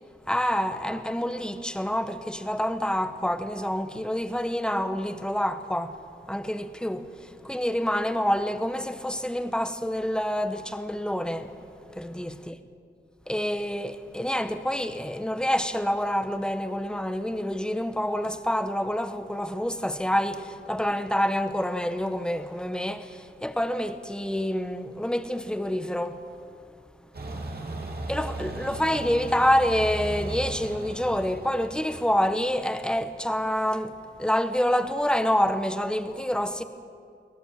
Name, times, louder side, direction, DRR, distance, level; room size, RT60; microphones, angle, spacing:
voice 1, 0.3-6.0 6.3-11.5 11.9-12.6 13.3-26.2 28.1-36.6, equal, 5° left, 1.4 m, -27 dB
sound 1, 27.1-32.9, right 2 dB, 55° right, 2.8 m, -37 dB
23.0 x 17.0 x 7.7 m
cardioid pair, 65°, 20 cm